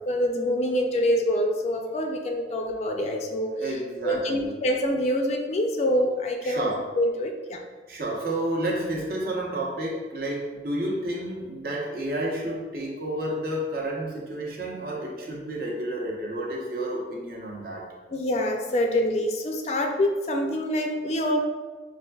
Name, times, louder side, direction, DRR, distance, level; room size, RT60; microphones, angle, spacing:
voice 1, 0.1-3.5 4.0-7.6 18.1-21.4, left 1 dB, 35° left, 3 dB, 0.3 m, -25 dB
voice 2, 3.5-4.5 6.4-6.9 7.9-17.9, right 1 dB, 55° right, -2 dB, 0.7 m, -30 dB
5.6 x 2.5 x 2.3 m, 1.4 s
head